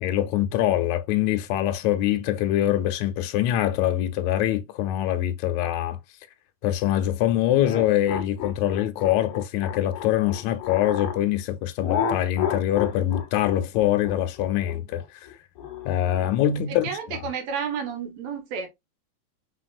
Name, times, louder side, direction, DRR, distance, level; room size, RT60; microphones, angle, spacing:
voice 1, 0.0-6.0 6.6-15.2 15.9-17.3, left 12 dB, 80° left, 1.9 m, -24 dB
sound 1, 7.6-11.2 11.8-16.3, left 8 dB, 65° left, 1.4 m, -31 dB
voice 2, 16.8-18.7, right 6 dB, 70° right, 2.3 m, -31 dB
4.4 x 4.1 x 2.5 m
omnidirectional pair, 3.3 m